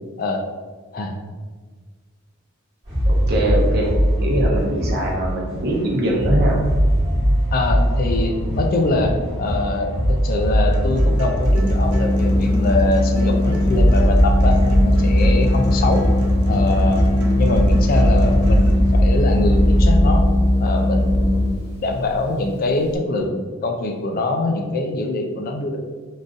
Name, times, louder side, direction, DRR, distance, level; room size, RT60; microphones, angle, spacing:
sound 1, 2.8-19.8, equal, 25° right, 1.1 m, -21 dB
voice 1, 3.1-3.9 4.2-6.6, right 1 dB, 50° right, -2 dB, 0.8 m, -22 dB
voice 2, 7.5-16.0 16.5-17.1 17.4-20.3 20.6-25.8, left 2 dB, 40° left, 4 dB, 0.3 m, -23 dB
sound 2, 10.7-18.7, equal, 85° right, 0.5 m, -33 dB
Organ, 11.5-21.8, left 1 dB, 80° left, 0.9 m, -18 dB
3.8 x 2.6 x 2.4 m, 1.5 s
head